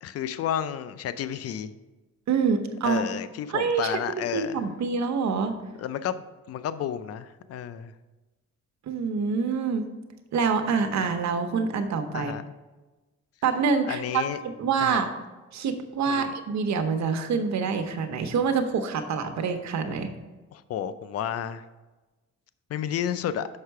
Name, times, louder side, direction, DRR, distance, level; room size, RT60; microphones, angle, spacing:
voice 1, 0.0-1.7 2.8-4.6 5.8-6.2 6.5-7.9 12.1-12.4 13.9-14.4 14.8-15.0 16.1-16.3 20.5-21.6 22.7-23.5, left 9 dB, 55° left, 14 dB, 0.5 m, -31 dB
voice 2, 2.3-3.1 3.5-4.0 4.3-5.6 8.9-9.9 10.3-12.3 13.4-15.1 15.5-20.1, right 5 dB, 65° right, 7 dB, 0.9 m, -26 dB
6.6 x 5.5 x 4.7 m, 1.2 s
cardioid pair, 90°, 30 cm